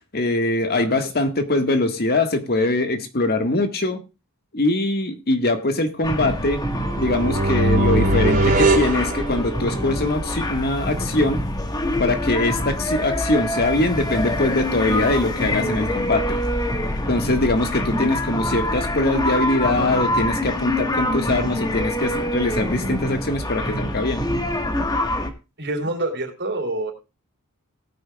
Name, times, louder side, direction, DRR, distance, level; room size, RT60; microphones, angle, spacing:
voice 1, 0.1-4.0 4.5-6.6 7.0-11.4 12.0-16.4 17.1-24.2, left 2 dB, 45° left, 7 dB, 1.6 m, -22 dB
sound 1, 6.0-25.3, left 1 dB, 20° left, 1.4 m, -25 dB
sound 2, 6.8-9.9, right 1 dB, 35° right, 3.5 m, -21 dB
voice 2, 25.6-26.9, right 2 dB, 50° right, 5 dB, 3.4 m, -26 dB
19.0 x 9.4 x 2.3 m, 0.28 s
head